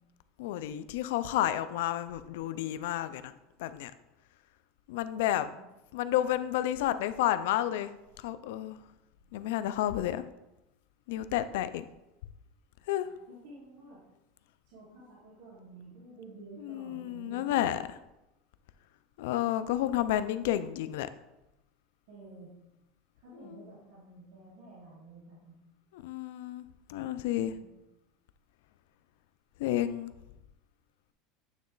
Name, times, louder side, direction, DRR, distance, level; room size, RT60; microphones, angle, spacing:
voice 1, 0.4-3.3 3.6-3.9 4.9-5.5 5.9-8.8 9.3-10.2 11.1-11.9 12.9-13.1 16.6-18.0 19.2-21.1 23.4-23.6 25.9-27.6 29.6-30.1, left 12 dB, 70° left, 13 dB, 0.4 m, -31 dB
voice 2, 5.3-5.6 13.3-14.0 14.7-17.6 22.1-22.5 23.2-25.5 27.4-27.8, right 2 dB, 65° right, -8 dB, 2.1 m, -51 dB
9.1 x 3.1 x 3.9 m, 0.93 s
supercardioid pair, 165°, 0 cm